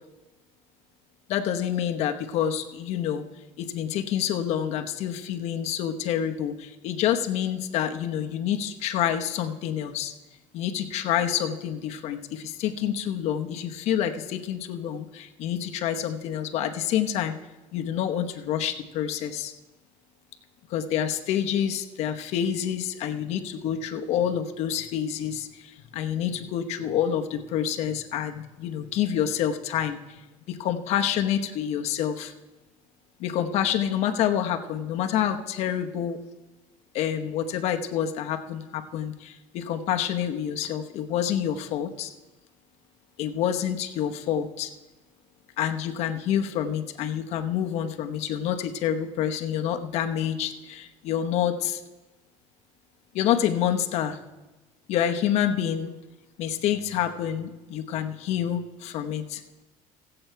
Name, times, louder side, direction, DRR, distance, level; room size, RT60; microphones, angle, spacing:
voice 1, 1.3-3.2 3.6-10.1 10.5-17.4 17.7-19.5 20.7-30.2 30.5-32.3 33.2-36.2 36.9-42.1 43.2-44.7 45.6-51.8 53.1-54.2 54.9-55.9 56.4-59.4, left 9 dB, 55° left, 6 dB, 0.9 m, -27 dB
16.0 x 7.8 x 4.5 m, 1.1 s
cardioid pair, 165°, 13 cm